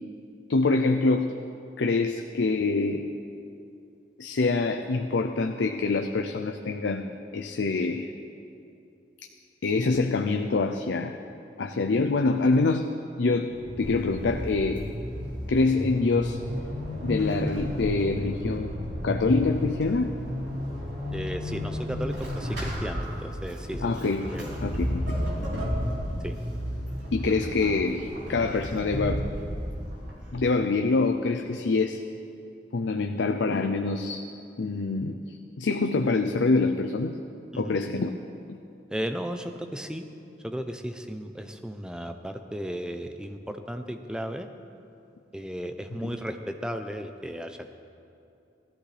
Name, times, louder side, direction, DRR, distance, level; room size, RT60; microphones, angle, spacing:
voice 1, 0.5-1.4 1.8-3.1 4.2-8.1 9.6-11.2 11.6-12.9 13.2-14.8 15.5-16.4 17.0-18.7 19.0-20.1 23.8-24.3 24.6-25.0 27.1-29.3 30.3-32.0 32.7-34.3 34.6-37.2 37.6-38.1 46.0-46.1, left 3 dB, 85° left, 6 dB, 0.5 m, -25 dB
Vehicle / Accelerating revving vroom / Squeak, 13.3-30.5, equal, 75° right, 3.8 m, -32 dB
voice 2, 21.1-24.0 24.3-24.6 26.2-26.4 37.5-37.8 38.9-40.0 40.4-44.5 45.3-47.7, equal, 5° right, 7 dB, 0.5 m, -35 dB
17.0 x 13.5 x 3.3 m, 2.7 s
head